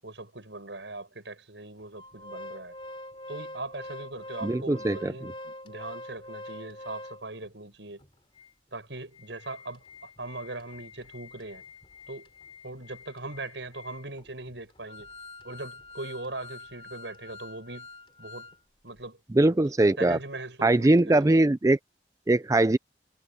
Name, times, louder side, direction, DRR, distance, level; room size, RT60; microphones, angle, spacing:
voice 1, 0.0-2.7 3.3-8.0 8.7-11.6 12.1-12.3 12.6-15.1 15.4-17.9 18.2-18.5 18.8-19.2 19.5-19.6 20.0-21.4, right 2 dB, 80° right, 7.8 m, -40 dB
Organ, 1.9-7.5 8.0-8.1 8.4-8.5 9.0-18.6 18.9-19.0, left 2 dB, 30° left, 2.9 m, -45 dB
voice 2, 4.4-5.1 19.3-20.2 20.6-21.8 22.3-22.8, right 2 dB, 20° right, 0.4 m, -21 dB
head